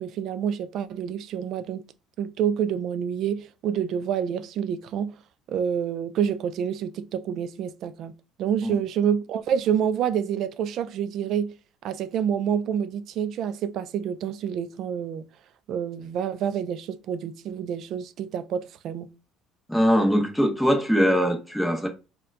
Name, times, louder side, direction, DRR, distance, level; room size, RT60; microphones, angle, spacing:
voice 1, 0.0-1.8 2.2-5.2 5.5-8.1 8.4-11.5 11.8-15.3 15.7-19.1, right 8 dB, 55° right, 0.3 m, -28 dB
voice 2, 19.7-21.9, equal, ahead, 0.7 m, -21 dB
4.2 x 2.2 x 2.5 m
cardioid pair, 125°, 0 cm